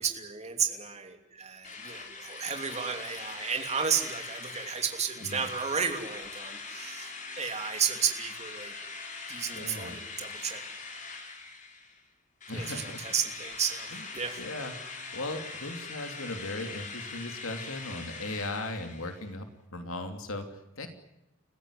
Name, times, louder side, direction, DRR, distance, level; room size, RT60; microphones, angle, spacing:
voice 1, 0.0-8.7 9.3-10.6 12.5-14.4, right 7 dB, 30° right, 5 dB, 3.0 m, -33 dB
Drill, 1.6-12.0 12.4-19.3, left 4 dB, 35° left, 3.9 m, -42 dB
voice 2, 9.5-9.9 12.5-13.0 13.9-14.0 14.4-14.7 15.1-20.9, left 2 dB, 80° left, 6 dB, 2.9 m, -37 dB
30.0 x 15.0 x 9.9 m, 0.92 s
head